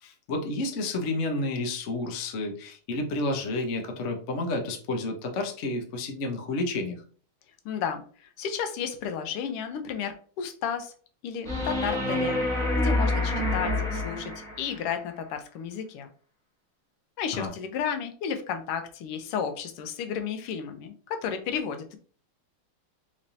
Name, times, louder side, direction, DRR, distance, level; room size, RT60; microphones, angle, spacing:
voice 1, 0.0-7.0 17.3-17.5, left 2 dB, 70° left, 3 dB, 0.6 m, -30 dB
voice 2, 7.6-10.9 11.2-16.1 17.2-22.0, left 7 dB, 90° left, 8 dB, 1.6 m, -33 dB
sound 1, 11.4-14.8 17.4-17.5, left 2 dB, 5° left, 0.3 m, -27 dB
4.2 x 3.1 x 2.6 m, 0.42 s
omnidirectional pair, 2.4 m